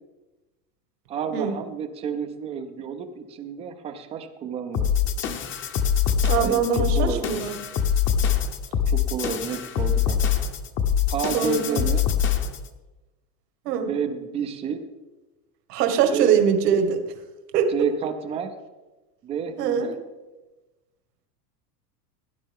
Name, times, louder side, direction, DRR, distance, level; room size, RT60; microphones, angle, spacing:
voice 1, 1.1-4.9 6.4-7.4 8.9-10.2 11.1-12.1 13.8-14.8 16.1-16.3 17.7-18.5 19.2-20.0, right 7 dB, 15° right, 7 dB, 0.3 m, -30 dB
sound 1, 4.7-12.7, left 8 dB, 25° left, 0.7 m, -24 dB
voice 2, 6.2-7.6 11.3-11.9 13.7-13.9 15.7-17.0 17.5-17.7 19.6-19.9, right 7 dB, 85° right, 6 dB, 1.8 m, -22 dB
17.5 x 10.0 x 3.6 m, 1.1 s
supercardioid pair, 150°, 47 cm